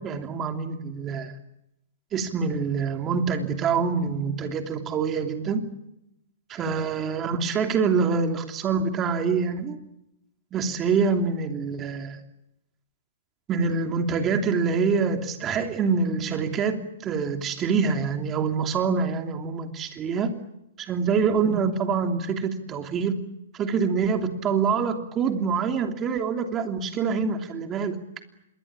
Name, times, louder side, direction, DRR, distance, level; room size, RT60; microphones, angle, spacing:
voice 1, 0.0-1.3 2.1-5.6 6.5-9.8 10.5-12.2 13.5-20.3 20.8-23.2 23.5-28.0, right 5 dB, 20° right, 6 dB, 3.0 m, -25 dB
26.5 x 22.5 x 8.8 m, 0.84 s
hypercardioid pair, 155°, 0 cm